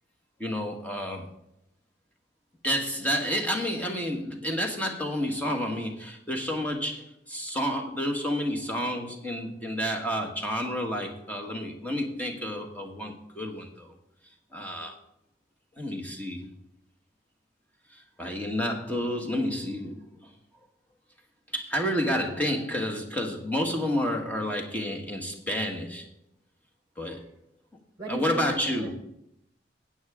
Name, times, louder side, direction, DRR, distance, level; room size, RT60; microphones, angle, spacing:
voice 1, 0.4-1.3 2.6-13.9 14.5-15.0 15.8-16.5 17.9-20.1 21.5-26.0 27.0-27.2 28.1-28.9, equal, 10° left, 2 dB, 1.5 m, -30 dB
voice 2, 28.0-29.0, right 1 dB, 20° right, 4 dB, 1.5 m, -36 dB
13.5 x 8.8 x 3.7 m, 0.77 s
head